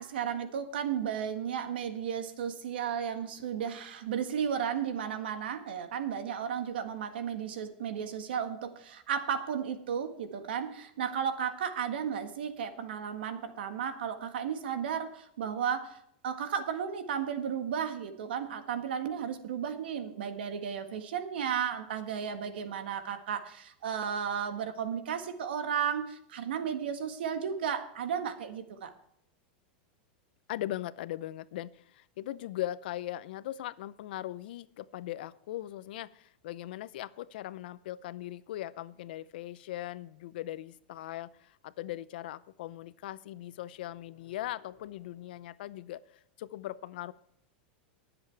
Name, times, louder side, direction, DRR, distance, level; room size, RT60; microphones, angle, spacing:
voice 1, 0.0-16.0 16.2-28.9, right 8 dB, 85° right, 8 dB, 1.6 m, -34 dB
voice 2, 30.5-47.1, left 14 dB, 70° left, 16 dB, 0.7 m, -39 dB
20.5 x 7.9 x 3.4 m, 0.72 s
supercardioid pair, 145°, 5 cm